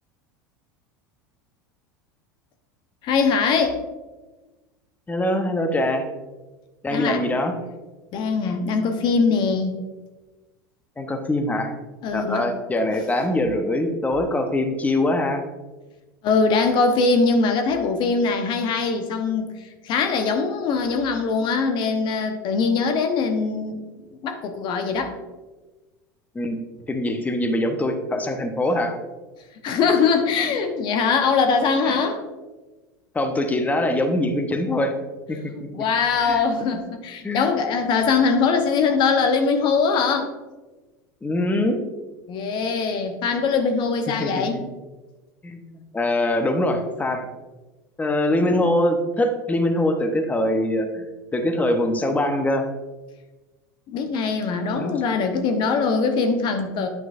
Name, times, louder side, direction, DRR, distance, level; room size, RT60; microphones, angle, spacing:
voice 1, 3.0-3.8 6.9-7.2 8.1-9.8 12.0-12.4 16.2-23.8 24.2-25.1 29.6-32.2 35.5-40.3 42.3-44.6 53.9-56.9, left 4 dB, 45° left, 5 dB, 0.9 m, -22 dB
voice 2, 5.1-6.1 6.8-7.5 11.0-11.7 12.1-15.4 26.3-26.6 26.9-29.0 31.9-32.0 33.1-34.9 35.3-35.4 36.2-36.4 37.2-37.5 41.2-41.8 44.2-44.7 45.4-47.3 48.0-51.1 51.3-52.7 54.7-54.9, left 1 dB, 15° left, 5 dB, 0.9 m, -23 dB
9.3 x 6.0 x 2.6 m, 1.2 s
hypercardioid pair, 85°, 11 cm